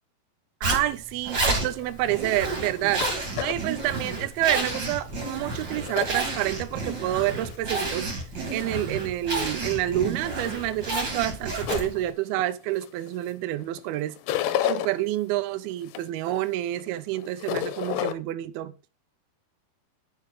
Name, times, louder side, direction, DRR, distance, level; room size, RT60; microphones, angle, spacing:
Zipper (clothing), 0.6-12.1, right 2 dB, 30° right, 2.6 m, -30 dB
voice 1, 0.6-3.1 3.4-8.1 8.5-14.2 14.6-18.7, right 14 dB, 80° right, 2.5 m, -28 dB
sound 1, 1.7-6.7 7.1-8.0 8.5-9.0 9.5-13.3 13.6-14.9 15.4-18.1, left 11 dB, 80° left, 2.2 m, -33 dB
9.6 x 5.6 x 4.6 m
omnidirectional pair, 4.5 m